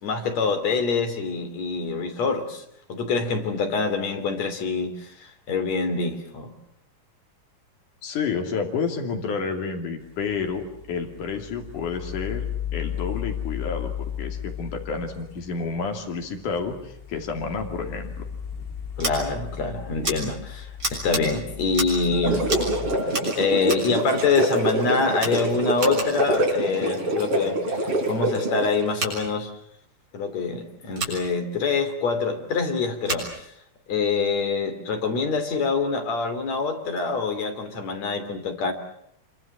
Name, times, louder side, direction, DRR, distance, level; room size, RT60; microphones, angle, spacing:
voice 1, 0.0-2.6 2.9-6.5 19.0-22.5 23.4-27.6 28.1-29.5 30.1-33.5 33.9-38.7, left 4 dB, 60° left, 7 dB, 4.2 m, -25 dB
voice 2, 8.0-18.3, left 5 dB, 75° left, 3 dB, 4.2 m, -30 dB
sound 1, 10.1-23.0, left 9 dB, 40° left, 2.4 m, -35 dB
Scissors, 19.0-19.1 20.0-20.2 20.8-21.2 21.7-22.0 22.4-22.7 23.1-23.9 24.6-24.8 25.1-26.2 28.9-29.1 30.9-31.2 33.0-33.3, right 2 dB, 30° right, 7.2 m, -30 dB
sound 2, 22.0-28.8, right 1 dB, 45° right, 4.8 m, -25 dB
26.5 x 24.5 x 7.4 m, 0.71 s
omnidirectional pair, 3.6 m